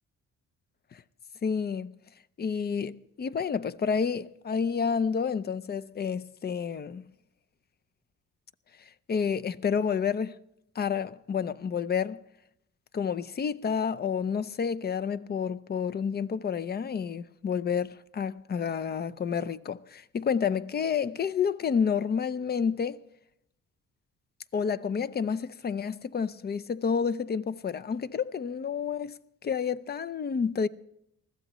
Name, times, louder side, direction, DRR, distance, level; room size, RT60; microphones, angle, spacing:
voice 1, 1.4-1.9 2.4-7.0 9.1-10.3 10.8-12.2 12.9-23.0 24.5-29.1 29.4-30.7, left 6 dB, 35° left, 0.5 m, -29 dB
20.5 x 14.0 x 3.0 m
cardioid pair, 90°, 30 cm